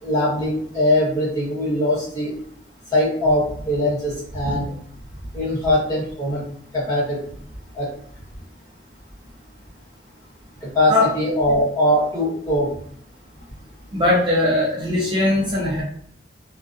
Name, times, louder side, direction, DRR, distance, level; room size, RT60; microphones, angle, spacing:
voice 1, 0.0-2.4 2.9-4.7 5.3-6.4 6.7-7.2 7.7-7.9 10.6-12.7, left 1 dB, 20° left, -8 dB, 1.2 m, -21 dB
voice 2, 13.9-15.8, left 2 dB, 25° right, -5 dB, 0.5 m, -19 dB
2.3 x 2.3 x 2.6 m, 0.63 s
head